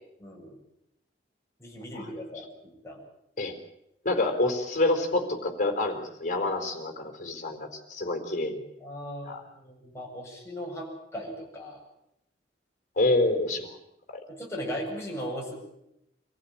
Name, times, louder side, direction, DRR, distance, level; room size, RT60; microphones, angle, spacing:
voice 1, 0.2-0.6 1.6-3.0 8.8-11.8 14.3-15.5, equal, 15° left, -2 dB, 7.8 m, -38 dB
voice 2, 4.0-8.6 9.2-9.4 13.0-13.7 14.1-14.2, left 2 dB, 45° left, 4 dB, 4.4 m, -27 dB
26.0 x 15.5 x 8.7 m, 0.81 s
head